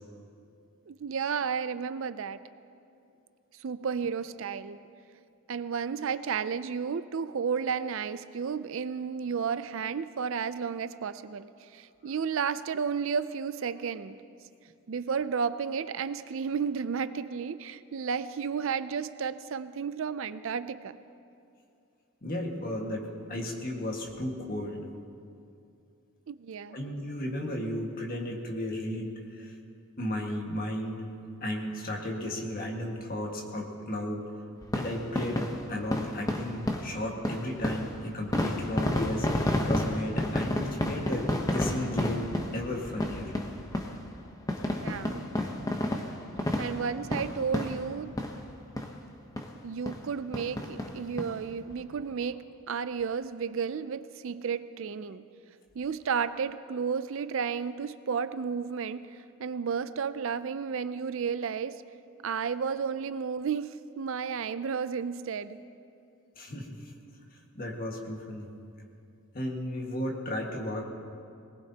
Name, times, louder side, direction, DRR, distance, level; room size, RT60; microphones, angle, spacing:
voice 1, 0.9-2.4 3.6-4.8 5.5-14.2 14.9-21.0 26.3-26.8 44.8-45.3 46.6-48.2 49.6-55.2 55.7-61.8 62.2-65.6, right 6 dB, 65° right, 14 dB, 0.4 m, -32 dB
voice 2, 22.2-24.8 26.7-29.6 30.0-31.1 31.4-34.3 34.7-43.3 66.4-66.9 67.5-68.5 69.3-70.8, left 1 dB, 40° left, 0 dB, 1.7 m, -34 dB
sound 1, 34.6-48.5 48.8-48.9 49.4-49.5 49.9-50.0 50.3-51.3 51.7-51.8 52.0-52.1, left 1 dB, 15° left, 0.9 m, -31 dB
21.0 x 19.0 x 2.9 m, 2.5 s
head